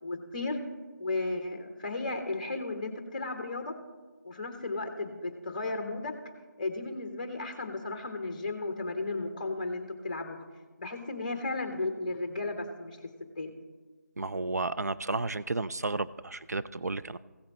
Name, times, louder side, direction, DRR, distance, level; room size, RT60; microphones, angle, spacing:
voice 1, 0.0-0.6 1.0-3.7 4.2-6.1 6.6-10.5 10.8-13.0 13.4-13.5, left 2 dB, 30° left, 6 dB, 1.0 m, -34 dB
voice 2, 14.2-17.2, right 3 dB, 65° right, 13 dB, 0.4 m, -32 dB
15.5 x 6.5 x 4.1 m, 1.3 s
figure-of-eight pair, 165°, 10 cm